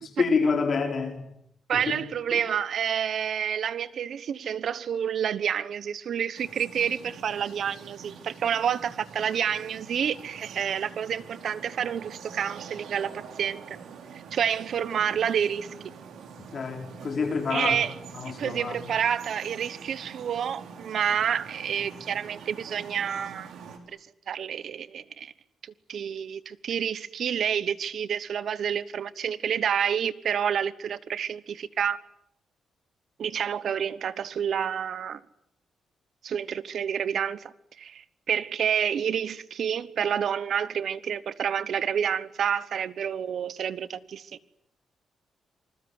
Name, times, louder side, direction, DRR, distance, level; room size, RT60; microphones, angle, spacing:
voice 1, 0.2-1.2 1.7-2.0 2.3-2.4 16.5-17.8 18.1-18.8, left 5 dB, 40° left, 4.9 m, -27 dB
voice 2, 1.7-13.1 13.4-13.8 14.1-15.7 17.5-17.9 18.4-23.5 24.3-25.3 25.6-32.0 33.2-35.2 36.2-44.3, right 8 dB, 55° right, 1.1 m, -29 dB
sound 1, 6.3-23.8, right 6 dB, 80° right, 4.4 m, -45 dB
27.5 x 20.5 x 9.6 m
wide cardioid pair, 165°, 0 cm